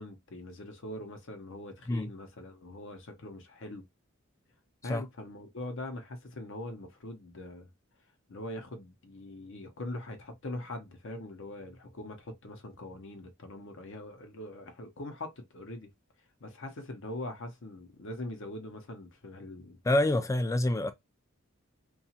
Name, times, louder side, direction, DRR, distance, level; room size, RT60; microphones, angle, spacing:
voice 1, 0.0-3.8 4.8-7.7 8.3-15.9 16.4-19.8, left 1 dB, 60° left, 0.7 m, -42 dB
voice 2, 19.8-20.9, left 1 dB, 15° left, 0.3 m, -27 dB
2.8 x 2.3 x 2.8 m
head